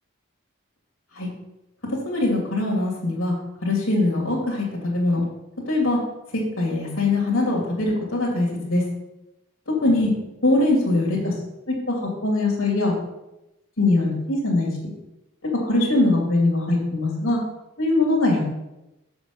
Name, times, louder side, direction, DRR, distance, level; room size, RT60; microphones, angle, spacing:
voice 1, 2.0-3.3 3.6-5.2 5.7-6.0 6.6-8.8 9.7-10.1 10.4-11.3 11.7-12.9 13.8-14.9 15.4-17.4 17.8-18.5, left 2 dB, 75° left, -3 dB, 2.7 m, -22 dB
7.2 x 7.0 x 5.4 m, 0.94 s
head